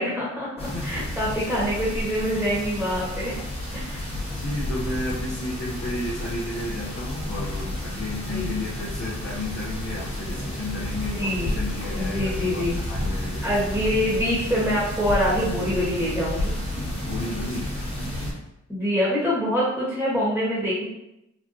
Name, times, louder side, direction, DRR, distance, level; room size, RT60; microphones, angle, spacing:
voice 1, 0.0-0.5 0.8-3.4 3.7-4.0 8.3-8.5 11.1-11.5 11.9-12.8 13.4-16.6 18.7-20.8, equal, 5° right, -8 dB, 1.1 m, -25 dB
voice 2, 0.6-1.1 4.3-13.5 16.9-17.7, left 1 dB, 50° left, -6 dB, 0.7 m, -32 dB
sound 1, 0.6-18.3, left 1 dB, 20° left, 1.2 m, -31 dB
4.0 x 2.2 x 2.6 m, 0.86 s
wide cardioid pair, 120°, 30 cm